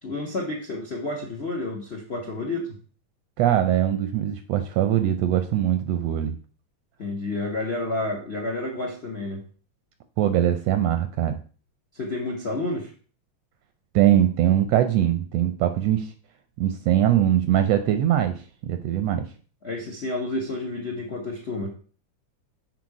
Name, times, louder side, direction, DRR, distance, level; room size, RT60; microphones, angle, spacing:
voice 1, 0.0-2.8 7.0-9.4 11.9-12.9 19.6-21.7, left 2 dB, 45° left, 2 dB, 0.8 m, -30 dB
voice 2, 3.4-6.4 10.2-11.4 13.9-16.1 16.6-19.3, right 11 dB, 75° right, 8 dB, 1.6 m, -22 dB
7.9 x 4.9 x 4.8 m, 0.39 s
omnidirectional pair, 3.4 m